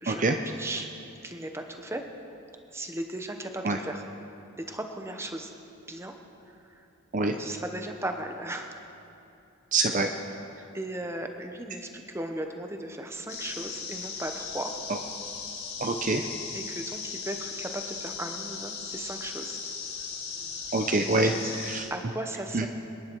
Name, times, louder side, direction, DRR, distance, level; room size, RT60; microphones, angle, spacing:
voice 1, 0.0-0.9 1.2-2.1 2.7-4.0 4.6-5.5 5.9-6.1 6.5-6.9 7.4-8.8 10.7-14.7 16.5-19.6 21.1-21.6 21.9-22.7, right 1 dB, 10° right, 5 dB, 0.9 m, -36 dB
voice 2, 9.7-10.1 15.8-16.3 20.7-21.3 21.6-21.9 22.5-22.7, right 3 dB, 35° right, 5 dB, 0.6 m, -25 dB
sound 1, 13.3-21.8, left 5 dB, 50° left, 2.8 m, -37 dB
26.0 x 10.5 x 4.6 m, 2.9 s
head